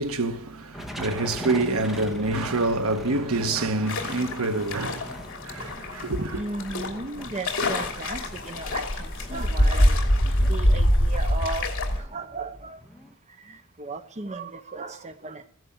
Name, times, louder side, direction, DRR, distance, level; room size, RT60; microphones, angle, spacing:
voice 1, 0.0-5.1 5.4-6.4, right 2 dB, 80° right, 1.3 m, -26 dB
sound 1, 0.7-13.1, equal, ahead, 1.6 m, -41 dB
sound 2, 3.9-12.0, left 1 dB, 60° left, 3.0 m, -25 dB
voice 2, 6.4-10.0 10.5-12.8 13.4-15.5, right 3 dB, 30° right, 0.8 m, -36 dB
15.0 x 11.0 x 7.3 m
head